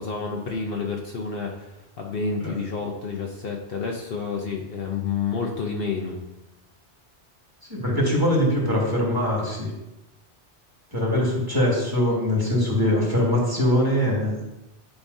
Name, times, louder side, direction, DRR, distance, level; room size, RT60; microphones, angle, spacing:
voice 1, 0.0-1.7 2.0-6.2, left 5 dB, 60° left, 0 dB, 1.0 m, -29 dB
voice 2, 7.7-9.7 10.9-14.4, left 1 dB, 20° right, -4 dB, 2.1 m, -22 dB
10.5 x 5.1 x 2.7 m, 0.94 s
omnidirectional pair, 1.2 m